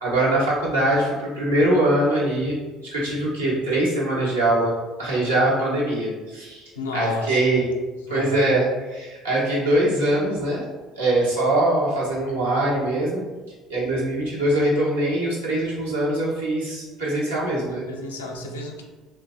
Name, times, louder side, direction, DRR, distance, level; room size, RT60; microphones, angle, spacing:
voice 1, 0.0-2.6 2.9-4.7 5.0-7.7 8.1-10.6 11.0-13.2 13.7-17.8, right 1 dB, 90° right, -6 dB, 0.9 m, -22 dB
voice 2, 6.8-7.4 8.0-8.5 17.5-18.8, left 2 dB, 85° left, 1 dB, 0.4 m, -32 dB
2.8 x 2.1 x 4.0 m, 1.2 s
hypercardioid pair, 60°, 0 cm